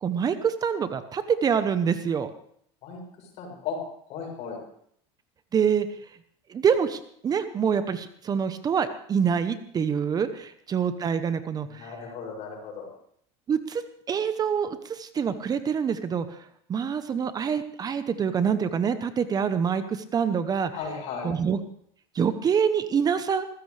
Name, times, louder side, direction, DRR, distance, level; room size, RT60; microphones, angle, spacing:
voice 1, 0.0-2.3 5.5-5.9 6.5-11.9 13.5-20.7 21.2-21.6 22.1-23.5, right 7 dB, 30° right, 11 dB, 0.9 m, -26 dB
voice 2, 2.8-3.8 4.1-4.6 11.7-12.9 20.7-21.3, left 5 dB, 55° left, 0 dB, 6.9 m, -36 dB
20.0 x 15.5 x 3.4 m, 0.66 s
supercardioid pair, 120°, 13 cm